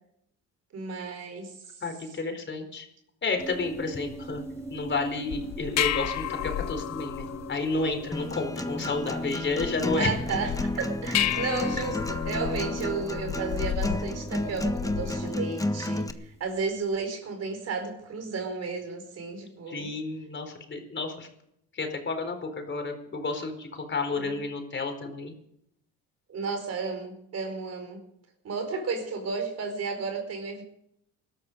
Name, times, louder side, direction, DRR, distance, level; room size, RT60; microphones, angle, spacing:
voice 1, 0.7-1.5 10.0-19.9 24.1-24.3 26.3-28.0 28.4-30.6, right 4 dB, 55° right, 6 dB, 4.9 m, -33 dB
voice 2, 1.8-2.9 3.2-4.4 4.7-10.2 19.7-21.3 21.7-25.3, left 3 dB, 40° left, 5 dB, 4.3 m, -31 dB
sound 1, 3.4-16.8, right 1 dB, 10° right, 6.5 m, -44 dB
sound 2, 5.3-15.3, left 13 dB, 65° left, 0.9 m, -33 dB
Acoustic guitar, 8.1-16.1, left 1 dB, 10° left, 1.3 m, -32 dB
20.0 x 13.0 x 5.3 m, 0.74 s
supercardioid pair, 80°, 30 cm